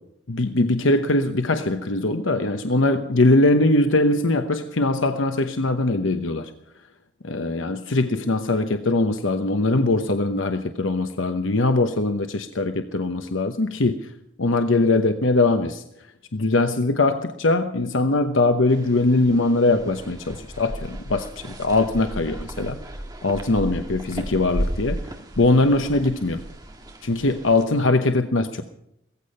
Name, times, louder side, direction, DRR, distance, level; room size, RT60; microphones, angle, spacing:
voice 1, 0.3-6.5 7.2-14.1 14.4-15.8 16.3-22.8 23.2-25.0 25.4-26.4 27.0-28.6, left 2 dB, 85° left, 7 dB, 1.0 m, -21 dB
sound 1, 18.7-27.6, right 1 dB, 20° right, 1.8 m, -34 dB
17.0 x 15.0 x 5.6 m, 0.77 s
head